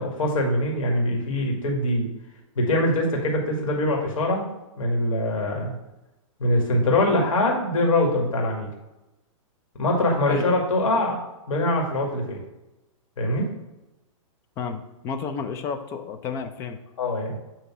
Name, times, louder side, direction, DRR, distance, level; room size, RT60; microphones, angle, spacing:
voice 1, 0.0-2.1 2.6-4.5 4.8-5.7 6.4-8.7 9.8-11.2 11.5-12.4 13.2-13.5 17.0-17.3, left 1 dB, 80° left, 0 dB, 2.1 m, -23 dB
voice 2, 14.6-16.8, left 6 dB, 15° left, 7 dB, 0.4 m, -31 dB
8.2 x 2.9 x 6.0 m, 0.99 s
hypercardioid pair, 160°, 17 cm